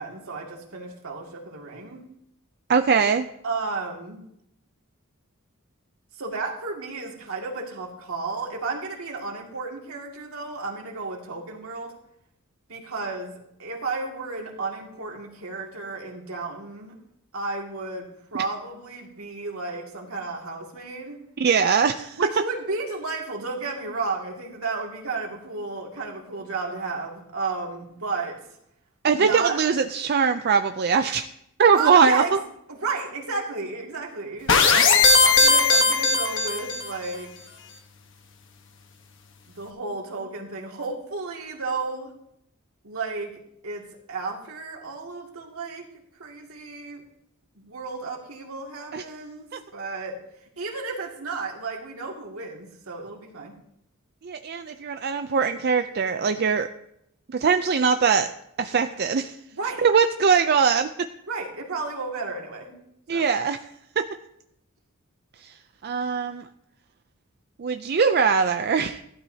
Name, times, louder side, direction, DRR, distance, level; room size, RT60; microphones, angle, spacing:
voice 1, 0.0-2.0 3.4-4.2 6.2-11.9 12.7-16.9 17.3-21.2 22.2-28.4 29.1-29.6 31.7-32.4 32.7-37.3 39.6-42.1 42.8-43.3 43.6-43.8 44.1-45.9 46.2-47.0 47.5-50.2 50.6-53.6 59.5-59.9 61.3-62.8 63.1-63.3, right 3 dB, 75° right, 0 dB, 2.3 m, -33 dB
voice 2, 2.7-3.3 21.4-22.2 29.0-31.3 31.6-32.4 48.9-49.0 49.5-49.6 54.2-56.7 57.3-58.3 58.6-59.3 59.8-61.1 63.1-63.6 64.0-64.1 65.4-65.5 65.8-66.5 67.6-69.0, right 6 dB, 45° right, 8 dB, 0.5 m, -21 dB
sound 1, 34.5-36.9, left 4 dB, 60° left, 1.2 m, -18 dB
15.5 x 12.0 x 2.8 m, 0.77 s
head